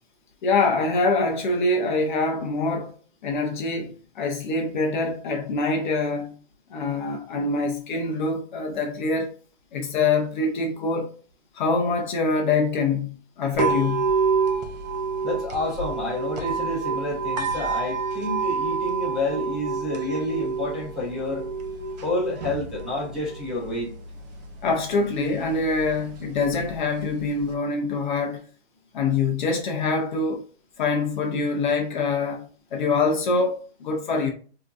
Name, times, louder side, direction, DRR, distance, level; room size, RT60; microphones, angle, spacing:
voice 1, 0.4-2.9 3.2-6.3 6.7-9.3 9.7-11.1 11.5-14.1 24.6-28.4 28.9-30.4 30.8-34.3, left 3 dB, 45° left, 0.6 m, -25 dB
sound 1, 13.5-27.5, right 4 dB, 40° right, 0.5 m, -29 dB
voice 2, 15.2-21.4 22.0-23.9, left 1 dB, ahead, 0.8 m, -29 dB
3.6 x 2.7 x 2.3 m
hypercardioid pair, 155°, 33 cm